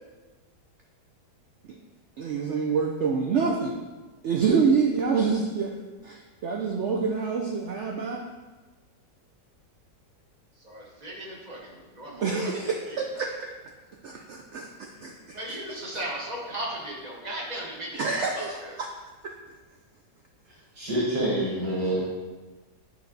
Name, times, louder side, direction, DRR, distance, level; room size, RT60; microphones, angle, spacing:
voice 1, 2.2-3.7 4.2-8.2 12.2-13.3 14.0-15.4 17.9-18.9, right 5 dB, 90° right, 1 dB, 0.6 m, -27 dB
voice 2, 10.6-13.0 14.1-14.2 14.9-18.1 18.3-18.7, right 1 dB, 30° right, -3 dB, 1.1 m, -37 dB
voice 3, 20.7-22.0, right 1 dB, 70° right, -7 dB, 2.2 m, -26 dB
8.6 x 3.3 x 3.9 m, 1.3 s
omnidirectional pair, 1.8 m